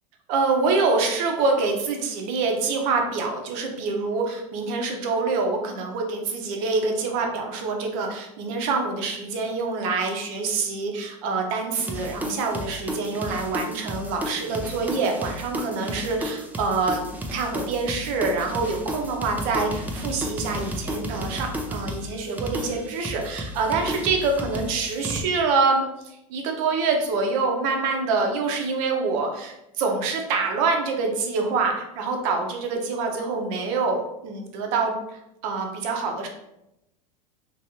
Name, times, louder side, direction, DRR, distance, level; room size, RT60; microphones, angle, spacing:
voice 1, 0.3-17.0 17.3-36.3, right 4 dB, 60° right, 3 dB, 0.8 m, -26 dB
sound 1, 11.7-25.2, equal, 10° right, 0.4 m, -33 dB
3.0 x 2.6 x 2.9 m, 0.86 s
hypercardioid pair, 100°, 20 cm